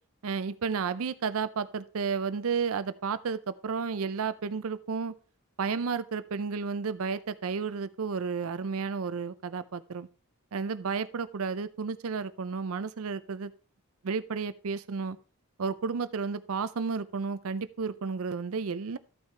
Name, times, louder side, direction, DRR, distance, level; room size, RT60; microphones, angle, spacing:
voice 1, 0.2-5.1 5.6-10.1 10.5-13.5 14.0-15.2 15.6-19.0, right 5 dB, 70° right, 16 dB, 0.5 m, -32 dB
13.0 x 5.7 x 3.3 m, 0.38 s
head